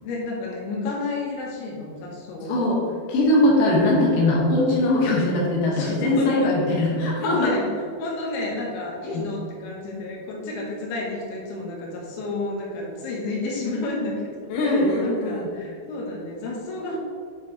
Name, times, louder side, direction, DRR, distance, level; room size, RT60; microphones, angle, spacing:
voice 1, 0.0-2.7 5.7-6.5 7.2-7.6 8.0-14.3 14.6-17.0, left 2 dB, 90° left, -3 dB, 3.7 m, -30 dB
voice 2, 3.1-7.5 9.0-9.3 14.5-15.5, left 1 dB, 60° left, -4 dB, 2.7 m, -21 dB
9.2 x 6.4 x 3.1 m, 2.1 s
omnidirectional pair, 5.2 m